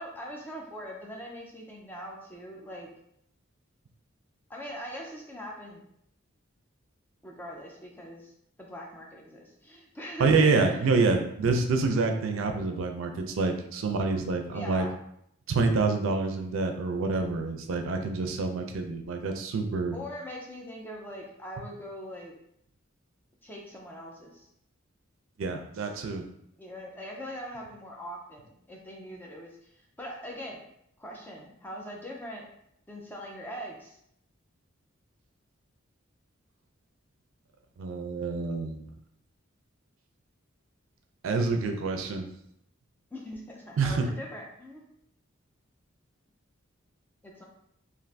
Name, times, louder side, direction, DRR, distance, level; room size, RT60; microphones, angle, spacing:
voice 1, 0.0-2.9 4.5-5.8 7.2-8.3 8.6-11.1 14.5-14.9 19.9-22.3 23.4-24.5 26.6-30.6 31.0-32.5 32.9-34.0 43.1-44.9 47.2-47.4, equal, 10° left, -1 dB, 0.4 m, -42 dB
voice 2, 10.2-14.9 15.5-20.0 25.4-26.2 37.8-38.8 41.2-42.3 43.8-44.1, right 4 dB, 75° right, 5 dB, 0.4 m, -27 dB
2.5 x 2.5 x 3.2 m, 0.74 s
head